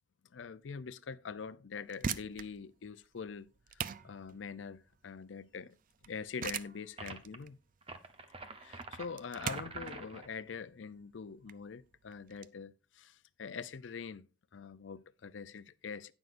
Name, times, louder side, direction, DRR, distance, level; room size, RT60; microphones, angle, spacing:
voice 1, 0.3-5.8 6.0-7.6 8.6-14.3 14.5-16.1, left 5 dB, 90° left, 0.5 m, -44 dB
sound 1, 1.7-12.5, right 7 dB, 50° right, 0.5 m, -43 dB
sound 2, 7.0-7.4 7.8-10.3, right 3 dB, 30° right, 0.9 m, -46 dB
17.0 x 6.3 x 2.5 m
head